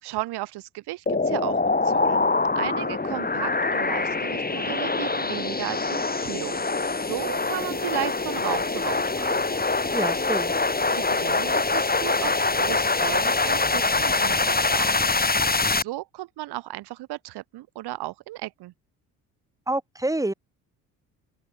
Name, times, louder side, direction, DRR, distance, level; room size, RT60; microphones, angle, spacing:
voice 1, 0.0-2.3 2.6-9.4 10.9-15.0 15.4-18.7, right 17 dB, 65° right, 2.0 m, -35 dB
sound 1, 1.1-15.8, left 3 dB, 20° left, 4.5 m, -24 dB
voice 2, 9.9-10.5 19.7-20.3, right 1 dB, 10° right, 2.5 m, -27 dB
open air
hypercardioid pair, 50°, 42 cm